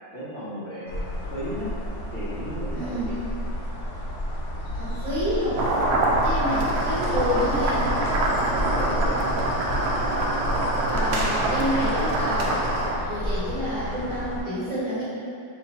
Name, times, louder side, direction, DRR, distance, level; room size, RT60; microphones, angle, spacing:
voice 1, 0.1-1.0 1.3-1.7 2.1-3.2 8.5-9.5, equal, 45° left, -13 dB, 1.1 m, -34 dB
sound 1, 0.9-14.4, equal, 90° left, 0.6 m, -31 dB
voice 2, 2.7-3.1 4.7-5.9 6.2-7.9 10.9-12.5 13.0-15.0, equal, 60° right, -11 dB, 2.1 m, -29 dB
sound 2, 5.6-13.0, right 2 dB, 80° right, 0.8 m, -25 dB
sound 3, 6.5-12.9, left 2 dB, 70° left, 1.0 m, -38 dB
6.3 x 2.6 x 3.1 m, 2.5 s
omnidirectional pair, 2.2 m